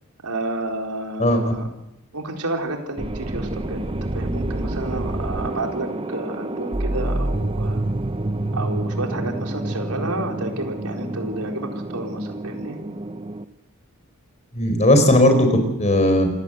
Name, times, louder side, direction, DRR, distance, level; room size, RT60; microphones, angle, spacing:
voice 1, 0.2-1.7 2.1-3.8 4.1-7.8 8.5-12.8, right 2 dB, 85° right, 2 dB, 4.2 m, -30 dB
voice 2, 1.2-1.5 14.5-16.3, left 1 dB, 30° left, 7 dB, 4.6 m, -17 dB
sound 1, 3.0-13.4, right 1 dB, 25° right, 0.8 m, -28 dB
27.0 x 17.0 x 8.0 m, 0.89 s
head